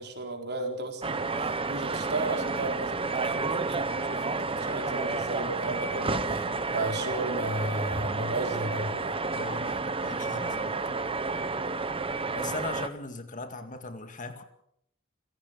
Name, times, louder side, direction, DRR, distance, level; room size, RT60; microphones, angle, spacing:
voice 1, 0.0-9.2, right 2 dB, 55° right, 4 dB, 4.3 m, -34 dB
sound 1, 1.0-12.9, right 3 dB, 25° right, 1.2 m, -31 dB
voice 2, 5.7-6.5 9.3-11.1 12.3-14.4, left 3 dB, 40° left, 8 dB, 2.1 m, -40 dB
29.5 x 16.5 x 6.8 m, 0.74 s
head